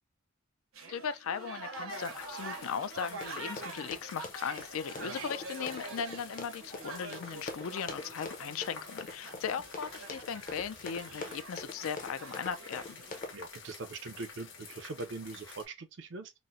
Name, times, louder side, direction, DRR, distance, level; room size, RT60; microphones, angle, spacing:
sound 1, 0.7-13.2, right 3 dB, 80° right, 0.9 m, -46 dB
voice 1, 0.9-13.0, left 7 dB, 80° left, 0.4 m, -38 dB
sound 2, 1.9-15.7, left 5 dB, 65° left, 0.9 m, -50 dB
Run, 3.2-13.3, left 3 dB, 40° left, 0.6 m, -44 dB
voice 2, 13.3-16.3, right 3 dB, 55° right, 0.5 m, -42 dB
4.1 x 2.0 x 2.4 m
head